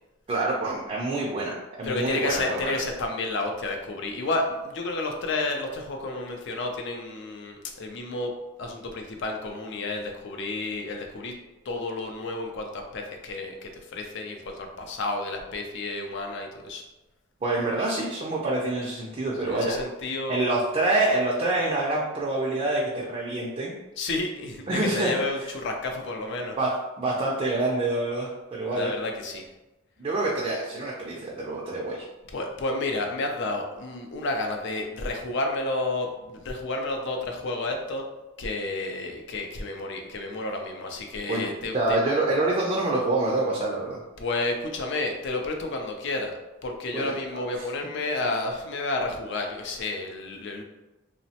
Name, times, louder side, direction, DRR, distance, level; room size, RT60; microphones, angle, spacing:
voice 1, 0.3-2.7 17.4-19.8 20.3-23.8 24.7-25.2 26.6-28.9 30.0-32.0 41.3-41.5 41.7-44.0 46.9-47.2, right 2 dB, 30° right, -4 dB, 0.4 m, -26 dB
voice 2, 1.8-8.3 8.6-11.3 11.7-16.8 19.5-20.4 24.0-26.6 28.7-29.5 32.3-38.1 38.4-42.0 44.2-50.6, left 2 dB, 65° left, 3 dB, 0.4 m, -31 dB
3.0 x 2.0 x 2.8 m, 1.0 s
head